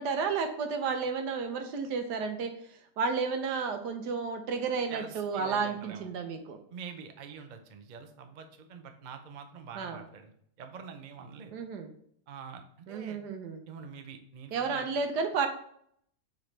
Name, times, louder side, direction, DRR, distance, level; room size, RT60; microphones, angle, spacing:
voice 1, 0.0-6.6 9.7-10.0 11.5-11.9 12.9-13.6 14.5-15.5, right 5 dB, 85° right, 6 dB, 1.5 m, -32 dB
voice 2, 4.9-6.1 6.7-10.3 10.6-11.5 12.3-13.2 13.7-14.9, right 6 dB, 50° right, 6 dB, 0.5 m, -45 dB
7.4 x 4.0 x 3.3 m, 0.65 s
omnidirectional pair, 1.7 m